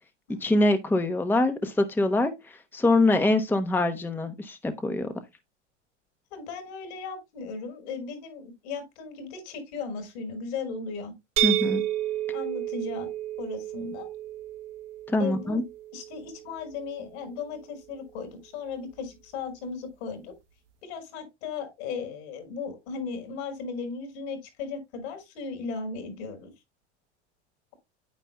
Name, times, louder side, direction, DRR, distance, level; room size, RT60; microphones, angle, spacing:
voice 1, 0.4-2.3 2.7-5.1 11.4-11.8 15.1-15.6, left 2 dB, 5° left, 0.9 m, -24 dB
voice 2, 6.3-11.1 12.3-14.1 15.2-15.6 15.9-20.3 20.8-26.5, left 5 dB, 70° left, 5.2 m, -36 dB
sound 1, 11.4-17.1, right 15 dB, 80° right, 1.6 m, -31 dB
9.5 x 9.0 x 2.2 m
supercardioid pair, 120°, 35 cm